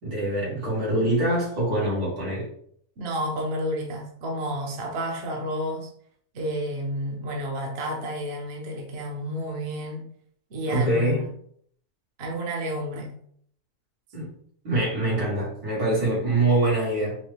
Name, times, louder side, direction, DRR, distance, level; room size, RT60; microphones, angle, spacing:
voice 1, 0.0-2.5 10.6-11.2 14.1-14.3 14.6-17.2, right 2 dB, 85° right, -6 dB, 2.4 m, -24 dB
voice 2, 3.0-5.9 6.3-10.0 10.5-11.3 12.2-13.1, equal, 50° right, 0 dB, 0.9 m, -30 dB
5.3 x 2.2 x 3.3 m, 0.64 s
omnidirectional pair, 1.6 m